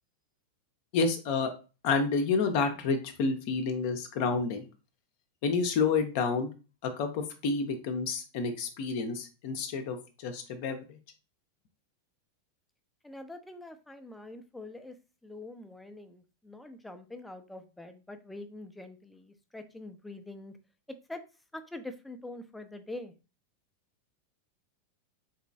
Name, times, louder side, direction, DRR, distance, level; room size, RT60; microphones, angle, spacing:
voice 1, 0.9-1.5 1.8-4.7 5.4-6.5 6.8-11.0, left 4 dB, 45° left, 6 dB, 0.6 m, -29 dB
voice 2, 13.0-14.9 15.2-20.6 21.1-21.2 21.5-23.1, left 2 dB, 5° left, 7 dB, 0.5 m, -44 dB
4.0 x 2.9 x 2.6 m, 0.32 s
figure-of-eight pair, 90°, 0 cm